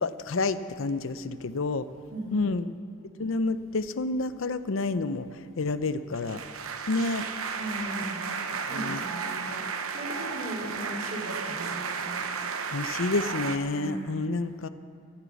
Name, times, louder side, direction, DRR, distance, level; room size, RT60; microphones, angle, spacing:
voice 1, 0.0-1.9 2.3-2.6 3.2-5.3 5.6-6.4 6.9-7.3 8.7-9.0 12.7-14.7, left 3 dB, 65° left, 13 dB, 0.6 m, -29 dB
voice 2, 2.1-2.7 7.6-8.3 8.6-9.6 9.9-12.0 13.7-14.5, right 1 dB, 40° right, -4 dB, 3.4 m, -38 dB
sound 1, 6.1-13.6, right 5 dB, 85° right, 0.9 m, -33 dB
13.5 x 11.0 x 8.4 m, 2.3 s
head